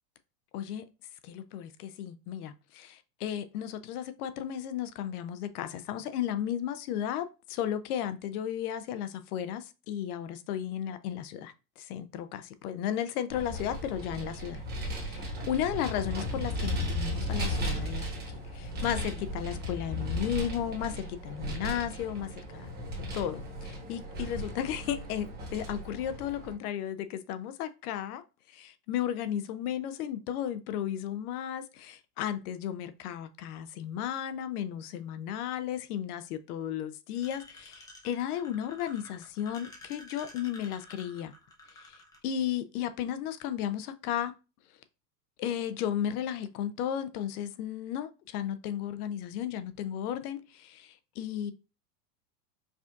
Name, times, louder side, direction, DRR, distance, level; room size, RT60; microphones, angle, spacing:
voice 1, 0.5-0.8 1.2-22.7 23.1-28.2 28.5-41.3 41.8-44.3 45.4-51.5, left 10 dB, 70° left, 0.6 m, -34 dB
Vehicle, 13.3-26.5, equal, 20° right, 1.2 m, -36 dB
sound 1, 37.1-42.2, left 2 dB, 10° left, 0.5 m, -50 dB
4.9 x 2.4 x 2.4 m
supercardioid pair, 130°, 48 cm